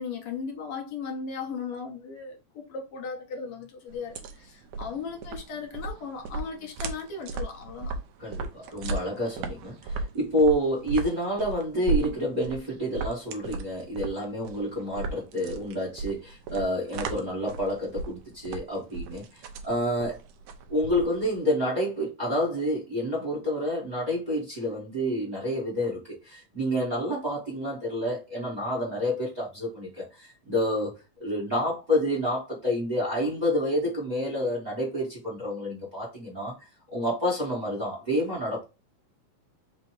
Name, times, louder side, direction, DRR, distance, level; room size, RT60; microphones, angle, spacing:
voice 1, 0.0-8.0, left 5 dB, 70° left, 1.4 m, -37 dB
sound 1, 3.9-21.4, right 3 dB, 75° right, 1.8 m, -36 dB
voice 2, 8.2-20.2 20.7-30.9 31.2-38.6, equal, 35° right, 0.7 m, -29 dB
5.3 x 2.0 x 4.6 m
omnidirectional pair, 3.4 m